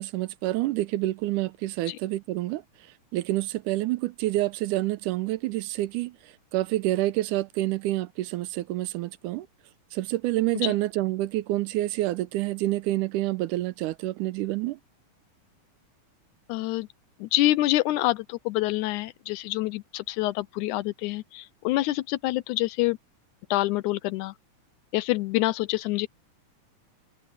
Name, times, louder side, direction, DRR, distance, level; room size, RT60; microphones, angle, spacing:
voice 1, 0.0-2.6 3.1-6.2 6.5-9.5 9.9-14.8, right 16 dB, 85° right, 2.2 m, -28 dB
voice 2, 16.5-16.9 17.2-23.0 23.5-24.3 24.9-26.1, left 17 dB, 80° left, 1.9 m, -26 dB
omnidirectional pair, 3.6 m